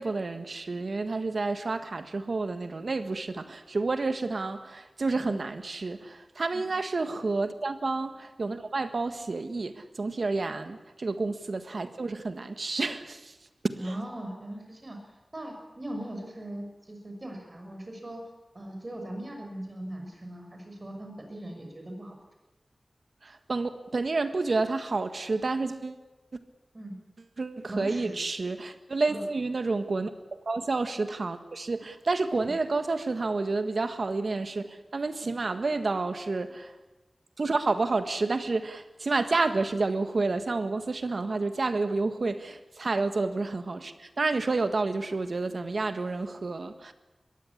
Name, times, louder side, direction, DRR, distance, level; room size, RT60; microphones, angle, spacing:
voice 1, 0.0-13.3 13.6-13.9 23.2-26.0 27.4-36.7 37.4-46.9, right 3 dB, 65° right, 10 dB, 1.6 m, -30 dB
voice 2, 13.8-15.0 15.3-18.2 18.5-22.1 26.7-27.0 27.7-28.2 29.1-29.3 32.4-32.5 35.2-35.4, right 1 dB, 35° right, 3 dB, 6.2 m, -39 dB
21.0 x 16.0 x 9.9 m, 1.1 s
wide cardioid pair, 90°, 0 cm